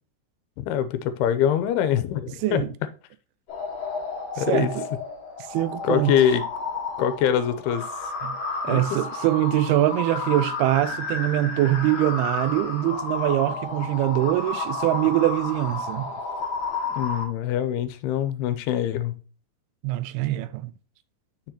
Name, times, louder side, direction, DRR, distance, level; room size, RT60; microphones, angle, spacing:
voice 1, 0.6-2.6 4.4-4.7 5.8-6.4 7.0-7.9 8.7-8.8 17.0-19.2, left 9 dB, 85° left, 2.6 m, -24 dB
sound 1, 3.5-17.3, left 3 dB, 45° left, 1.9 m, -32 dB
voice 2, 4.4-4.9 5.5-6.2 8.2-8.4 8.6-16.1 19.8-20.7, right 15 dB, 80° right, 2.4 m, -23 dB
7.0 x 6.2 x 2.9 m
omnidirectional pair, 4.6 m